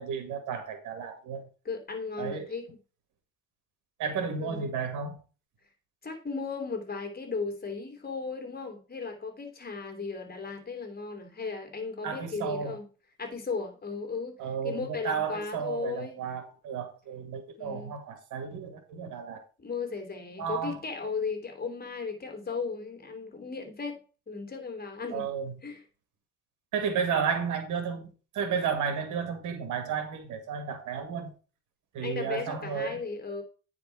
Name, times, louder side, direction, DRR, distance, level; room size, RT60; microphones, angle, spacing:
voice 1, 0.0-1.4 2.2-2.5 4.0-5.2 12.0-12.8 14.4-19.4 20.4-20.8 25.1-25.5 26.7-31.3 31.9-33.0, right 6 dB, 85° right, 2.0 m, -32 dB
voice 2, 1.6-2.8 4.4-4.7 6.0-12.9 13.2-14.4 14.6-16.2 17.6-17.9 19.6-24.0 24.3-25.3 25.6-25.8 32.0-33.4, left 4 dB, 30° left, 2.9 m, -36 dB
9.4 x 5.0 x 4.6 m
cardioid pair, 90°, 30 cm